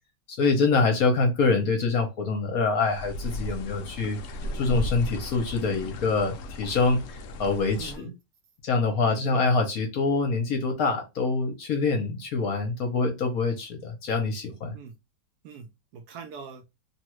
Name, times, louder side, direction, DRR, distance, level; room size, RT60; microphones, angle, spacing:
voice 1, 0.4-4.2 4.5-8.1 8.6-14.7, left 4 dB, 65° left, 1.0 m, -25 dB
sound 1, 2.8-8.0, left 1 dB, 80° left, 0.7 m, -36 dB
voice 2, 7.8-8.1 9.1-9.4 14.7-14.9 15.4-16.6, right 6 dB, 70° right, 1.0 m, -43 dB
3.0 x 2.3 x 3.0 m
omnidirectional pair, 1.9 m